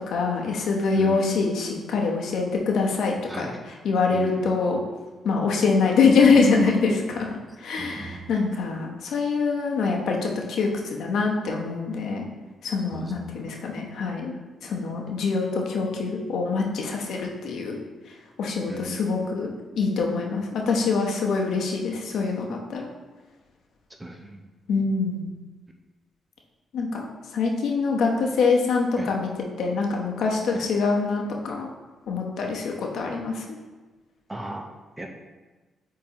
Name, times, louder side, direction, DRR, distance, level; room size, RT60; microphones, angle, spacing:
voice 1, 0.1-3.4 3.8-4.8 5.2-7.3 7.6-12.2 12.6-14.3 14.6-17.8 18.4-22.9 24.7-25.3 26.7-27.1 27.3-29.3 29.6-31.7 32.1-33.4, left 4 dB, 75° left, 0 dB, 0.9 m, -24 dB
voice 2, 0.9-1.3 3.3-3.6 4.1-4.5 7.5-8.2 12.9-13.1 18.7-19.0 24.0-24.4 29.0-29.1 30.5-30.7 34.3-34.6 35.0-35.1, right 2 dB, 15° right, 2 dB, 0.7 m, -35 dB
8.8 x 3.8 x 2.9 m, 1.3 s
cardioid pair, 110°, 0 cm